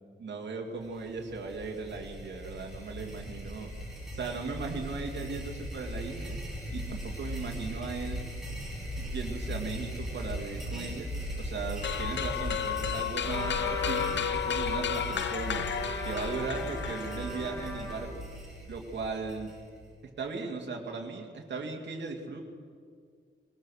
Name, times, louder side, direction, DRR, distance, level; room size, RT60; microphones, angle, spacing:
voice 1, 0.2-3.7 4.1-6.4 6.7-8.2 9.0-11.1 11.3-15.6 16.0-18.2 18.6-19.5 20.0-22.4, right 4 dB, 65° right, 1 dB, 2.4 m, -37 dB
sound 1, 0.8-19.9, equal, ahead, 5.0 m, -39 dB
sound 2, 11.8-17.4, left 9 dB, 65° left, 0.6 m, -33 dB
Trumpet, 13.2-18.1, left 1 dB, 15° left, 2.5 m, -39 dB
20.5 x 20.5 x 6.5 m, 2.1 s
wide cardioid pair, 175°, 20 cm